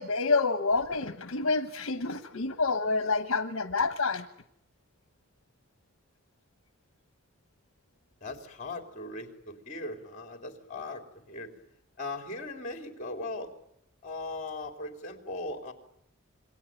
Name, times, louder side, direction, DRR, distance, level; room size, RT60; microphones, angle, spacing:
voice 1, 0.0-4.2, left 4 dB, 75° left, 9 dB, 1.1 m, -28 dB
voice 2, 8.2-11.5 12.0-13.5 14.0-15.7, left 2 dB, 35° left, 5 dB, 3.6 m, -39 dB
27.5 x 22.5 x 9.2 m, 0.79 s
head